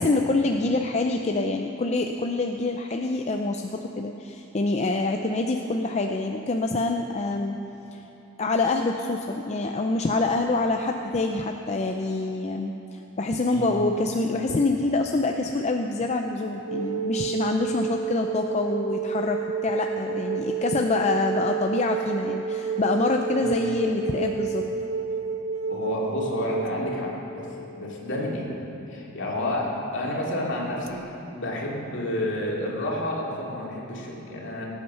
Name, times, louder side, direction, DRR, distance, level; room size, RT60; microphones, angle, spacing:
voice 1, 0.0-7.6 7.9-8.0 8.4-24.6, left 3 dB, 35° left, 3 dB, 0.5 m, -26 dB
sound 1, 16.7-29.1 30.9-31.0, right 6 dB, 70° right, 0.6 m, -30 dB
voice 2, 25.7-27.5 27.8-28.5 28.9-34.7, left 1 dB, 60° left, -4 dB, 2.8 m, -30 dB
19.0 x 8.7 x 5.6 m, 3.0 s
head